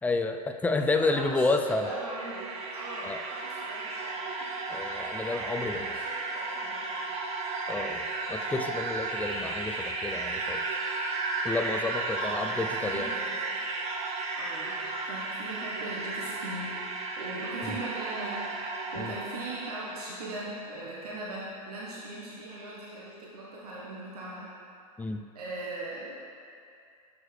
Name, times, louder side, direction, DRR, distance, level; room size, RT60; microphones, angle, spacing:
voice 1, 0.0-1.9 3.0-3.2 4.7-6.0 7.7-10.6 11.4-13.1 17.6-17.8 19.0-19.1 25.0-25.2, left 3 dB, 10° left, 5 dB, 0.4 m, -30 dB
voice 2, 0.7-4.6 5.7-7.1 12.1-13.4 13.9-16.8 17.2-18.5 18.9-24.5 25.3-26.2, right 2 dB, 80° right, -6 dB, 1.3 m, -40 dB
sound 1, 1.7-20.3, right 3 dB, 35° right, 0.9 m, -34 dB
7.8 x 6.4 x 3.3 m, 2.5 s
hypercardioid pair, 100°, 19 cm